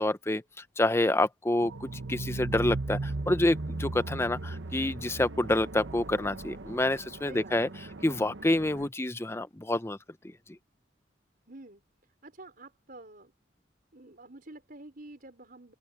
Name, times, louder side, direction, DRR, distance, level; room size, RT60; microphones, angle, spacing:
voice 1, 0.0-7.7 8.0-10.0, left 1 dB, 15° left, 0.6 m, -28 dB
sound 1, 1.6-8.9, right 2 dB, 75° right, 1.0 m, -37 dB
voice 2, 7.3-7.8 11.5-11.8 12.2-13.3 13.9-15.7, right 2 dB, 50° right, 5.5 m, -48 dB
open air
head